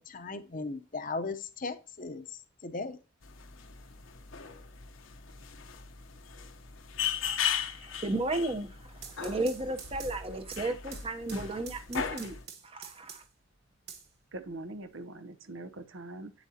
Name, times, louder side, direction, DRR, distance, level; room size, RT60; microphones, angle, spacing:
voice 1, 0.1-3.0, left 3 dB, 40° left, 0.8 m, -37 dB
sound 1, 3.2-12.4, left 8 dB, 70° left, 0.9 m, -38 dB
voice 2, 7.6-12.4 12.6-13.2, right 2 dB, 25° right, 0.8 m, -34 dB
sound 2, 8.9-13.4 13.9-14.8, right 7 dB, 50° right, 1.0 m, -48 dB
voice 3, 14.3-16.3, right 2 dB, 70° right, 0.7 m, -42 dB
8.6 x 7.2 x 2.8 m
head